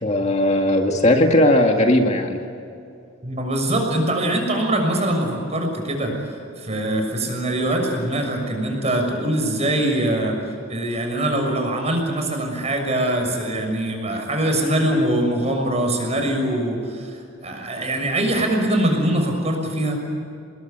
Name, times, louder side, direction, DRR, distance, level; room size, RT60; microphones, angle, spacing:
voice 1, 0.0-2.4, left 1 dB, 35° left, 3 dB, 2.0 m, -17 dB
voice 2, 3.2-6.1 6.6-10.4 10.7-20.0, right 1 dB, 30° right, 3 dB, 6.4 m, -23 dB
27.5 x 21.0 x 9.4 m, 2.5 s
head